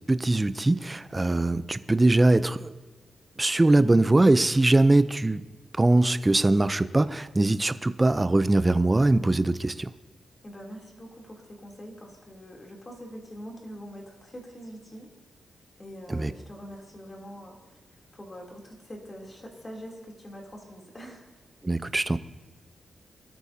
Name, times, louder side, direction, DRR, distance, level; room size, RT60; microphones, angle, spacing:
voice 1, 0.1-2.7 3.4-5.4 5.8-9.9 16.1-16.3 21.6-22.2, right 2 dB, 20° right, 13 dB, 0.5 m, -22 dB
voice 2, 10.4-15.1 15.8-17.8 18.1-21.3, equal, 25° left, 0 dB, 3.0 m, -44 dB
23.5 x 13.0 x 2.8 m, 1.3 s
wide cardioid pair, 110°, 0 cm